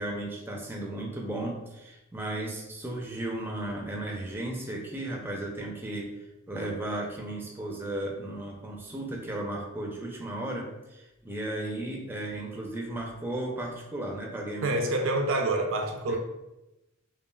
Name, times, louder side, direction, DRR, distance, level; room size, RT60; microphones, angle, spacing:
voice 1, 0.0-6.1 6.5-14.8 16.1-16.2, right 1 dB, 10° right, -1 dB, 0.5 m, -35 dB
voice 2, 14.6-16.2, right 2 dB, 65° right, 3 dB, 0.5 m, -27 dB
5.4 x 2.4 x 2.3 m, 0.97 s
head